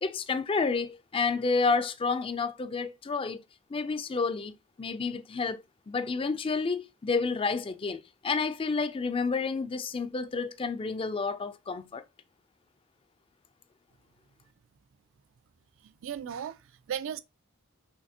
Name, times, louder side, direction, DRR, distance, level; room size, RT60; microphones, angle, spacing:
voice 1, 0.0-3.4 3.7-12.0, left 4 dB, 25° left, 0.3 m, -30 dB
voice 2, 15.8-17.2, right 8 dB, 60° right, 0.4 m, -36 dB
5.7 x 3.2 x 2.7 m
head